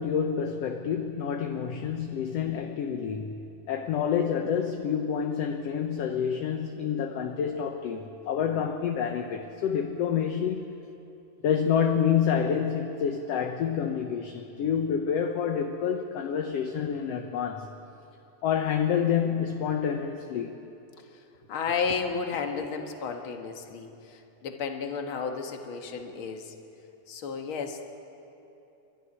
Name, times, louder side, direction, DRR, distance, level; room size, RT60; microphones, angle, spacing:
voice 1, 0.0-3.4 3.7-10.8 11.4-17.7 18.4-20.6, left 7 dB, 65° left, 4 dB, 1.7 m, -28 dB
voice 2, 21.5-26.5 27.1-27.8, left 5 dB, 50° left, 3 dB, 2.0 m, -32 dB
27.5 x 13.0 x 10.0 m, 2.9 s
omnidirectional pair, 3.6 m